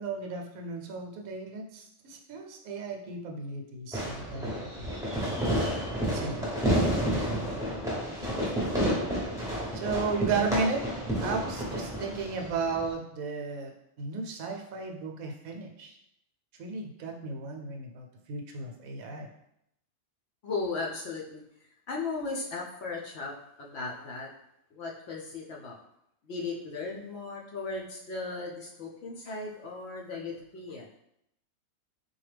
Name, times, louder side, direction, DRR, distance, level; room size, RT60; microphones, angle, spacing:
voice 1, 0.0-5.5 6.1-6.5 7.2-7.4 9.7-10.8 11.2-13.7 14.0-16.0 16.6-19.3, right 4 dB, 75° right, 2 dB, 1.0 m, -34 dB
Fireworks, 3.9-12.9, equal, 5° right, 0.7 m, -30 dB
voice 2, 8.0-8.5 20.4-24.3 24.7-25.8 26.2-30.9, left 3 dB, 65° left, -1 dB, 0.7 m, -37 dB
4.1 x 2.3 x 3.3 m, 0.79 s
omnidirectional pair, 1.5 m